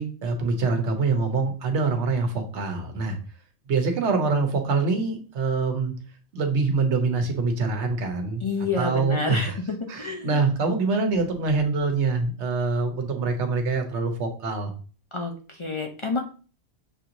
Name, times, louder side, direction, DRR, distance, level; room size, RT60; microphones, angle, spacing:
voice 1, 0.0-3.2 3.7-5.9 6.3-8.4 8.8-9.6 9.9-14.7, right 4 dB, 90° right, 5 dB, 1.2 m, -25 dB
voice 2, 8.4-10.4 15.1-16.2, left 3 dB, 40° left, 2 dB, 0.4 m, -29 dB
6.9 x 2.6 x 2.9 m, 0.38 s
omnidirectional pair, 1.1 m